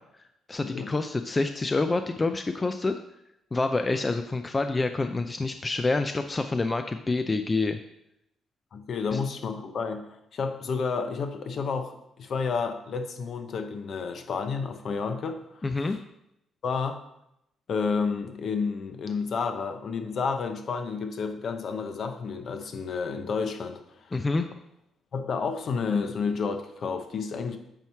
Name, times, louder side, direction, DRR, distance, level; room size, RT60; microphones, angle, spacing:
voice 1, 0.5-3.0 3.5-7.8 9.1-9.2 15.6-16.0 24.1-24.5, left 3 dB, 25° left, 7 dB, 0.4 m, -27 dB
voice 2, 8.7-15.6 16.6-17.0 17.7-23.8 25.1-27.6, left 5 dB, 55° left, 7 dB, 0.8 m, -30 dB
8.8 x 3.1 x 5.7 m, 0.82 s
cardioid pair, 90°, 0 cm